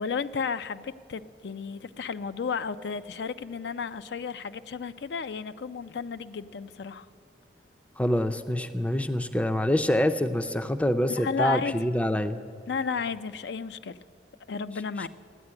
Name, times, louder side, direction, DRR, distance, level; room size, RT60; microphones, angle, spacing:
voice 1, 0.0-7.1 11.2-11.7 12.7-14.0 14.5-15.1, left 5 dB, 75° left, 12 dB, 0.4 m, -33 dB
voice 2, 8.0-12.4, left 1 dB, 5° left, 10 dB, 0.4 m, -26 dB
14.0 x 9.6 x 9.6 m, 2.4 s
head